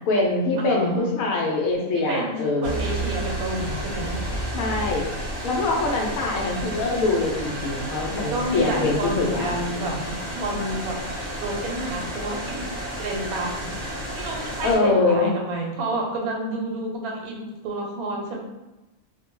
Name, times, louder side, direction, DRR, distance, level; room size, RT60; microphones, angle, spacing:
voice 1, 0.1-2.8 4.5-5.1 5.4-10.1 14.6-15.3, left 3 dB, 75° left, -1 dB, 1.0 m, -24 dB
voice 2, 0.6-1.1 1.9-4.2 8.3-9.9 10.2-11.0 11.4-13.7 14.2-18.4, right 1 dB, 85° right, 0 dB, 1.1 m, -29 dB
sound 1, 2.6-14.8, right 1 dB, 40° right, 0.3 m, -31 dB
2.5 x 2.1 x 2.9 m, 1.0 s
omnidirectional pair, 1.5 m